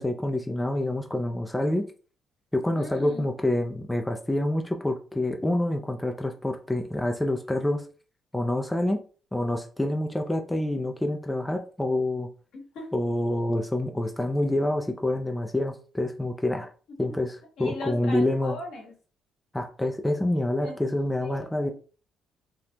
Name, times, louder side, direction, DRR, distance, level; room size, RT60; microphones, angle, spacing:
voice 1, 0.0-1.9 2.5-7.9 8.3-9.0 9.3-12.3 12.9-16.7 17.0-18.6 19.5-21.7, left 1 dB, 10° left, 4 dB, 0.5 m, -27 dB
voice 2, 2.8-3.3 12.5-12.9 17.1-17.2 17.6-18.9 20.6-20.7 21.2-21.7, left 2 dB, 75° left, -1 dB, 1.3 m, -39 dB
3.4 x 2.3 x 2.8 m, 0.38 s
supercardioid pair, 65°, 0 cm